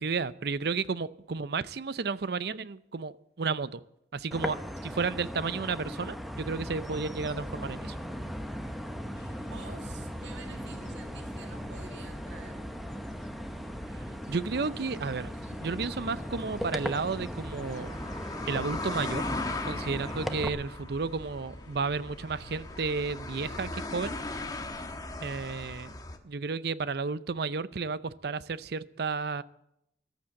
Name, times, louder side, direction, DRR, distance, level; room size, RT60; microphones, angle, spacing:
voice 1, 0.0-3.1 3.4-3.8 4.1-8.0 14.3-15.3 15.6-18.0 18.5-19.4 19.6-24.2 25.2-25.9 26.2-29.4, right 4 dB, 60° right, 0.6 m, -32 dB
sound 1, 4.3-20.5, equal, ahead, 0.9 m, -38 dB
sound 2, 6.2-23.8, left 1 dB, 80° left, 2.8 m, -52 dB
voice 2, 9.5-12.7, right 4 dB, 85° right, 2.0 m, -49 dB
sound 3, 10.7-26.2, left 2 dB, 20° left, 1.2 m, -40 dB
14.5 x 11.5 x 7.6 m
head